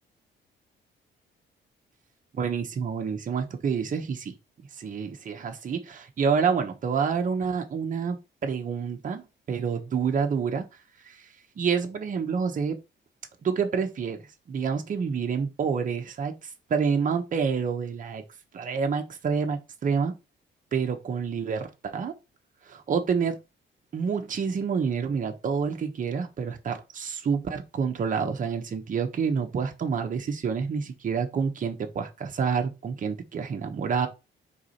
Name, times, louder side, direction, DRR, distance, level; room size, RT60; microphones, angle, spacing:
voice 1, 2.3-4.3 4.8-8.2 8.4-10.7 11.0-11.2 11.6-12.8 13.4-14.2 14.5-18.2 18.5-20.1 20.7-22.1 22.7-23.4 23.9-34.1, right 6 dB, 40° right, 1.1 m, -28 dB
4.8 x 4.0 x 5.4 m
cardioid pair, 145°, 20 cm